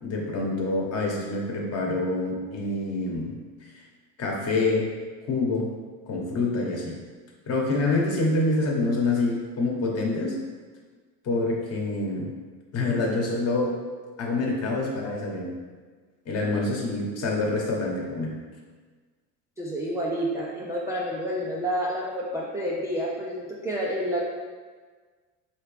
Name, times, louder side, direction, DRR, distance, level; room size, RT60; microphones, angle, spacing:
voice 1, 0.0-3.3 4.2-4.9 5.3-5.7 6.1-6.9 7.5-10.4 11.2-12.3 12.7-13.8 14.2-15.5 16.3-18.3, left 2 dB, 40° left, -1 dB, 1.0 m, -26 dB
voice 2, 19.6-24.2, equal, 10° right, -5 dB, 0.3 m, -29 dB
4.8 x 3.1 x 3.2 m, 1.5 s
cardioid pair, 125°, 37 cm